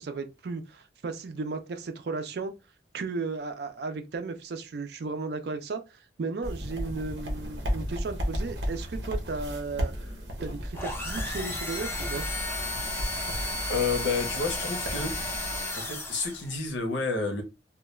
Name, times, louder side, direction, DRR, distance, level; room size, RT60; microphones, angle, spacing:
voice 1, 0.0-2.5 2.9-9.9 10.4-12.2, right 4 dB, 60° right, 0.4 m, -35 dB
sound 1, 6.4-15.6, equal, 90° right, 0.8 m, -34 dB
sound 2, 10.7-16.5, left 2 dB, 15° left, 0.4 m, -34 dB
voice 2, 13.7-15.1 15.8-17.4, left 4 dB, 90° left, 0.7 m, -30 dB
2.3 x 2.2 x 3.0 m
head